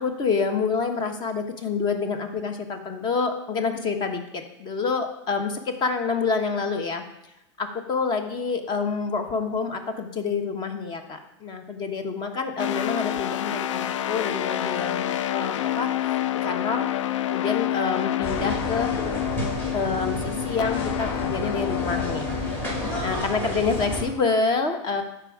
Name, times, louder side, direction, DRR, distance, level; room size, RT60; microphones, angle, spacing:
voice 1, 0.0-7.0 7.6-15.9 16.4-16.9 17.2-18.9 19.7-22.3 23.0-25.0, left 4 dB, 30° left, 6 dB, 1.2 m, -27 dB
sound 1, 12.6-23.2, left 12 dB, 90° left, 0.4 m, -28 dB
sound 2, 18.2-24.0, equal, 15° left, 2.8 m, -31 dB
12.5 x 4.9 x 4.8 m, 0.88 s
supercardioid pair, 130°, 15 cm